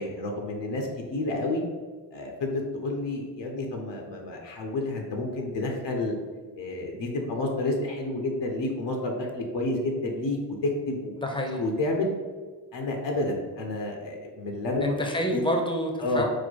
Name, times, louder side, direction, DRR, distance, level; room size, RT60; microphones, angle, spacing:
voice 1, 0.0-1.6 2.1-6.2 6.6-10.4 10.6-11.1 11.5-12.1 12.7-14.8 15.3-15.4 16.0-16.2, left 2 dB, 60° left, 1 dB, 0.9 m, -30 dB
voice 2, 11.2-11.6 14.8-16.2, equal, 10° left, 2 dB, 0.8 m, -27 dB
4.4 x 2.1 x 4.5 m, 1.5 s
supercardioid pair, 45°, 48 cm